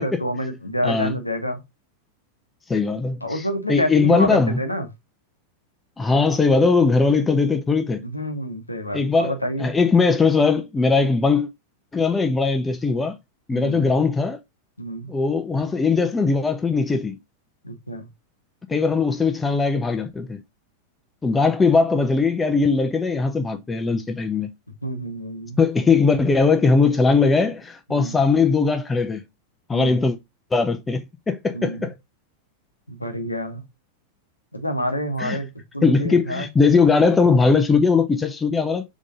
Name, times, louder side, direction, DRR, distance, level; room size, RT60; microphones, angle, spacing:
voice 1, 0.0-1.6 3.2-4.9 8.0-9.7 13.5-13.9 14.8-15.1 17.6-18.1 24.8-25.6 27.9-28.2 29.7-30.0 31.5-31.9 32.9-33.6 34.5-36.5, equal, 85° left, 0.9 m, -28 dB
voice 2, 2.7-3.4 3.7-4.6 6.0-8.0 8.9-9.3 9.6-11.5 11.9-13.2 13.5-14.4 15.1-17.2 18.7-20.4 21.2-24.5 25.6-29.2 29.7-30.2 30.5-31.9 35.2-35.4 35.8-38.8, left 4 dB, 15° left, 0.5 m, -19 dB
3.7 x 3.5 x 4.0 m
figure-of-eight pair, 90°, 0 cm